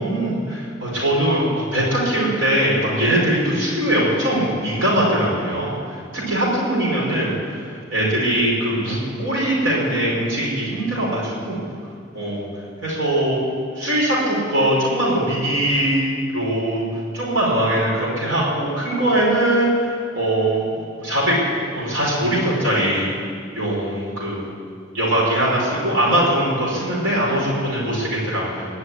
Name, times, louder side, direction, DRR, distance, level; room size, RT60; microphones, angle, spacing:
voice 1, 0.0-7.6 7.9-11.6 12.1-12.4 12.8-13.4 13.7-16.8 17.1-20.6 21.0-23.0 23.5-24.4 24.9-28.7, right 1 dB, 75° right, -5 dB, 5.5 m, -21 dB
20.5 x 6.9 x 9.6 m, 2.2 s
head